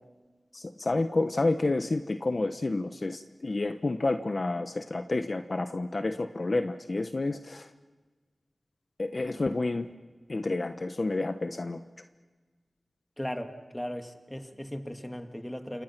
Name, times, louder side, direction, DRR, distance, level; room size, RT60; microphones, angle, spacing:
voice 1, 0.5-7.7 9.0-9.9 10.3-11.8, left 2 dB, 60° left, 8 dB, 1.1 m, -29 dB
voice 2, 13.2-15.8, equal, 15° left, 5 dB, 2.2 m, -37 dB
29.0 x 26.0 x 6.1 m, 1.3 s
cardioid pair, 45°, 0 cm